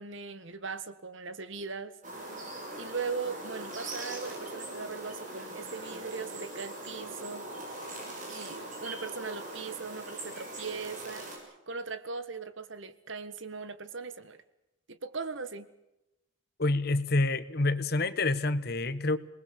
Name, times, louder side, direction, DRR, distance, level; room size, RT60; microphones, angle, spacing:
voice 1, 0.0-2.0 2.3-2.4 2.7-7.5 8.3-14.4 14.9-15.7, right 4 dB, 65° right, 13 dB, 1.6 m, -39 dB
sound 1, 2.0-11.4, right 1 dB, 35° right, 7.3 m, -41 dB
voice 2, 16.6-19.2, left 2 dB, 50° left, 14 dB, 1.2 m, -27 dB
27.5 x 20.0 x 6.7 m, 0.92 s
head